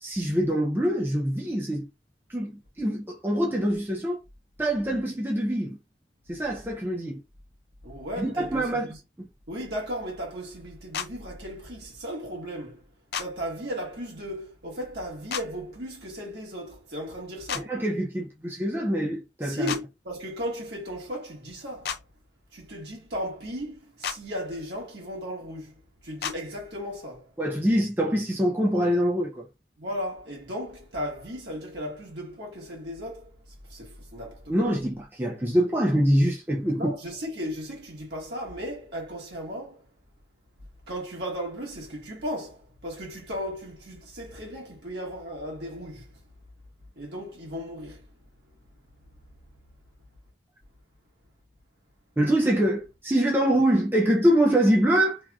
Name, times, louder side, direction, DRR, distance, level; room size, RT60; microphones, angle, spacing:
voice 1, 0.0-1.9 2.3-4.2 4.6-5.8 6.3-7.2 8.2-8.9 9.2-9.3 17.5-19.7 27.4-29.5 34.5-36.9 52.2-55.2, equal, 10° right, 0.4 m, -24 dB
voice 2, 7.8-9.0 9.5-12.8 13.2-17.7 19.4-22.0 22.5-27.3 29.8-33.3 33.7-34.7 36.8-39.8 40.9-46.1 46.9-48.0, equal, 70° right, 1.5 m, -36 dB
sound 1, 10.9-11.1 13.1-13.3 15.3-15.5 17.5-17.6 19.7-19.8 21.8-22.0 24.0-24.2 26.2-26.4, left 8 dB, 60° left, 0.4 m, -31 dB
3.4 x 2.4 x 2.3 m
head